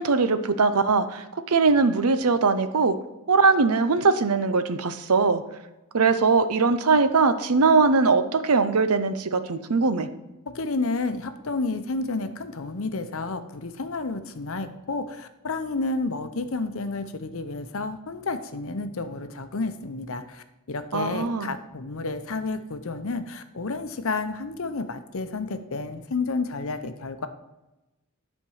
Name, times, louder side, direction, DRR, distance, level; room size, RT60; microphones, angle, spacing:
voice 1, 0.0-3.0 3.3-5.4 5.9-10.1 20.9-21.5, right 4 dB, 80° right, 11 dB, 0.7 m, -21 dB
voice 2, 10.5-27.3, left 3 dB, 65° left, 9 dB, 0.8 m, -31 dB
10.5 x 4.4 x 6.4 m, 1.0 s
head